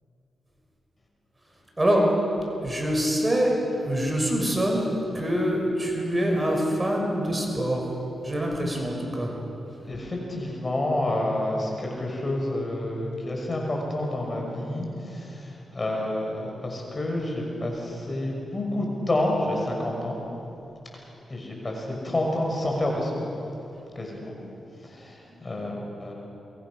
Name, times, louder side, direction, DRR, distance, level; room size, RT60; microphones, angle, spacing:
voice 1, 1.8-2.1 2.6-3.6 3.8-7.8 8.2-9.3, equal, 20° right, 0 dB, 5.9 m, -24 dB
voice 2, 9.9-20.2 20.9-23.4 23.9-24.3 24.8-26.1, left 1 dB, 35° left, 0 dB, 6.1 m, -29 dB
23.5 x 21.5 x 6.4 m, 2.8 s
cardioid pair, 60°, 0 cm